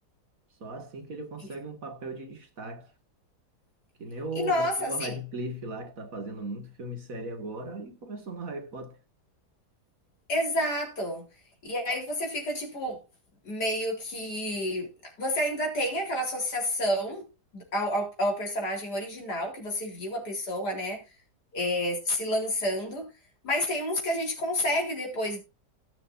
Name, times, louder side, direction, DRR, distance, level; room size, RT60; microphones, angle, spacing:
voice 1, 0.6-2.9 4.0-9.0, right 2 dB, 55° right, 2.2 m, -38 dB
voice 2, 4.4-5.1 10.3-11.2 11.6-13.0 13.4-14.9 15.2-17.2 17.5-21.0 21.5-23.1 23.4-25.4, left 1 dB, 80° left, 4.3 m, -29 dB
18.0 x 7.0 x 2.6 m
omnidirectional pair, 1.7 m